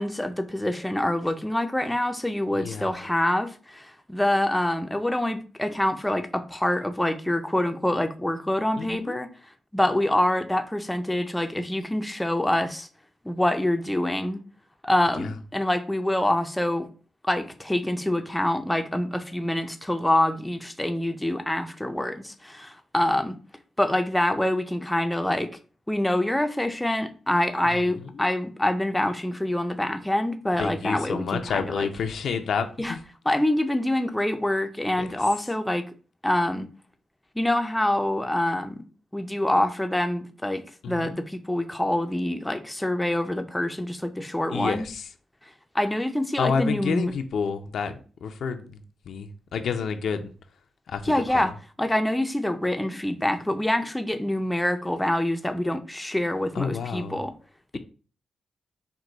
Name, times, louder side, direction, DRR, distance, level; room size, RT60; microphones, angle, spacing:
voice 1, 0.0-9.3 9.7-12.9 13.2-14.4 14.8-16.9 17.2-23.4 23.8-25.5 25.9-31.9 32.8-32.9 33.3-35.9 36.2-36.7 37.4-38.8 39.1-44.8 45.7-47.1 51.0-51.5 51.8-57.3, left 1 dB, 5° left, 0.4 m, -26 dB
voice 2, 2.5-2.9 8.8-9.2 15.2-15.3 27.6-28.2 30.5-33.0 35.0-35.1 40.8-41.2 44.5-45.1 46.4-50.3 50.9-51.5 56.5-57.2, left 6 dB, 75° left, 0.5 m, -30 dB
4.6 x 2.2 x 3.8 m
cardioid pair, 95°, 0 cm